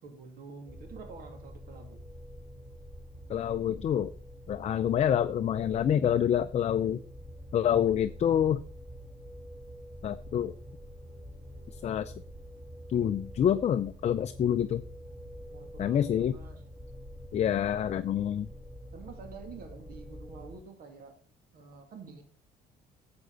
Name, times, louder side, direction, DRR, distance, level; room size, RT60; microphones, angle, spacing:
voice 1, 0.0-2.0 15.5-16.6 18.9-21.2 21.5-22.2, right 4 dB, 60° right, 4 dB, 2.4 m, -48 dB
sound 1, 0.7-20.6, equal, 20° right, 2.7 m, -46 dB
voice 2, 3.3-4.1 4.5-7.0 7.5-8.6 10.0-10.5 11.8-12.1 12.9-14.8 15.8-16.4 17.3-18.5, left 9 dB, 40° left, 9 dB, 0.5 m, -27 dB
9.4 x 7.8 x 3.9 m, 0.41 s
cardioid pair, 110°, 17 cm